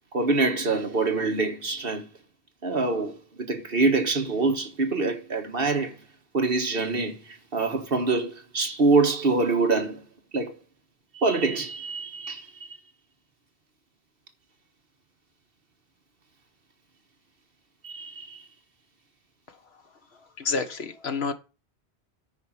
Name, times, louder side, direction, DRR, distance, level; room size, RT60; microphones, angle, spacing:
voice 1, 0.1-2.1 2.6-6.0 6.3-10.0 10.3-10.6 11.1-12.8 17.8-18.4, right 3 dB, 55° right, 1.8 m, -25 dB
voice 2, 20.4-21.3, left 4 dB, 65° left, 1.6 m, -28 dB
9.5 x 5.3 x 7.4 m
omnidirectional pair, 1.1 m